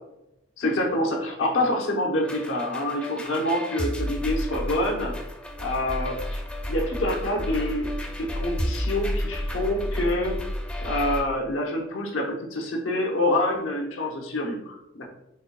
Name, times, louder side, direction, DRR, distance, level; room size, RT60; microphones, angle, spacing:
voice 1, 0.6-5.1 5.6-6.4 6.7-7.9 8.2-10.4 10.8-15.1, left 1 dB, 85° left, 1 dB, 0.9 m, -26 dB
sound 1, 2.2-11.2, equal, 5° left, 0.5 m, -31 dB
4.3 x 4.3 x 2.2 m, 0.87 s
head